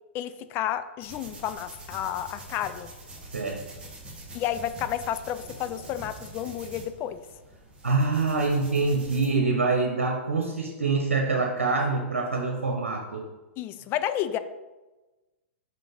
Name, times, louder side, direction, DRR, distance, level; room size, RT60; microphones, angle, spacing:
voice 1, 0.1-2.9 4.3-7.3 13.6-14.4, left 11 dB, 30° left, 12 dB, 0.4 m, -31 dB
sound 1, 1.0-9.3, right 1 dB, 15° right, 1.7 m, -45 dB
voice 2, 3.3-3.6 7.8-13.2, right 3 dB, 80° right, 1 dB, 1.0 m, -25 dB
5.3 x 5.1 x 4.0 m, 1.1 s
figure-of-eight pair, 110°, 7 cm